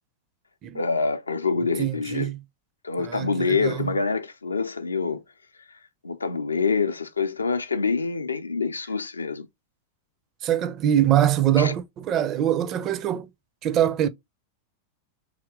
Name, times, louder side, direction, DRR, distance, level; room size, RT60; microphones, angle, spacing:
voice 1, 0.7-2.3 2.8-5.2 6.0-9.5 11.6-11.7, left 4 dB, 75° left, 0.4 m, -26 dB
voice 2, 1.8-2.4 3.0-3.9 10.4-13.3 13.6-14.1, right 11 dB, 35° right, 0.4 m, -23 dB
3.5 x 2.8 x 3.6 m
figure-of-eight pair, 90°, 0 cm